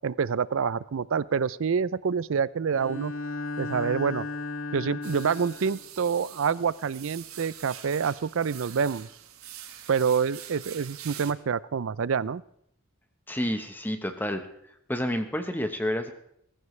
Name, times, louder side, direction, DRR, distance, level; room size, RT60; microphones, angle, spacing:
voice 1, 0.0-3.1 3.6-4.3 4.7-9.1 9.9-12.4, right 6 dB, 65° right, 19 dB, 0.5 m, -27 dB
Bowed string instrument, 2.7-5.9, left 3 dB, 65° left, 1.3 m, -35 dB
sound 1, 5.0-11.3, right 10 dB, 85° right, 1.3 m, -45 dB
voice 2, 13.3-14.4 14.9-16.1, equal, 10° left, 7 dB, 1.0 m, -29 dB
21.0 x 14.5 x 3.2 m, 0.72 s
head